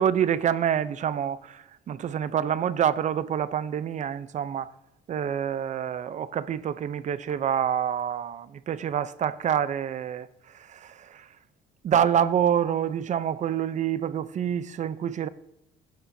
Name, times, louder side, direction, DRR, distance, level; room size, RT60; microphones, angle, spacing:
voice 1, 0.0-4.7 5.1-11.3 11.8-15.3, right 9 dB, 45° right, 0.7 m, -27 dB
23.0 x 10.5 x 2.8 m
cardioid pair, 110°, 17 cm